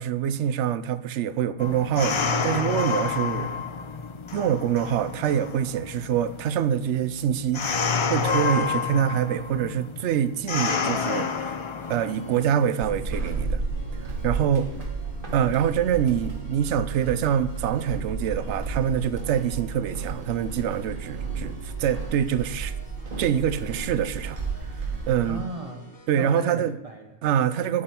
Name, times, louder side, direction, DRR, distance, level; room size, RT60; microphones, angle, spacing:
voice 1, 0.0-3.6 4.3-7.8 8.1-11.6 11.9-13.6 14.0-14.7 15.3-22.7 23.2-24.4 25.1-25.4 26.1-26.7 27.2-27.8, right 9 dB, 80° right, 0.9 m, -25 dB
sound 1, 1.6-12.7, left 5 dB, 45° left, 0.4 m, -29 dB
sound 2, 11.8-26.1, equal, 20° left, 1.0 m, -50 dB
Walk footsteps / Squeak, 12.8-25.5, right 4 dB, 50° right, 1.5 m, -33 dB
voice 2, 25.2-27.2, right 2 dB, 35° right, 0.9 m, -37 dB
8.9 x 8.5 x 4.4 m
omnidirectional pair, 1.2 m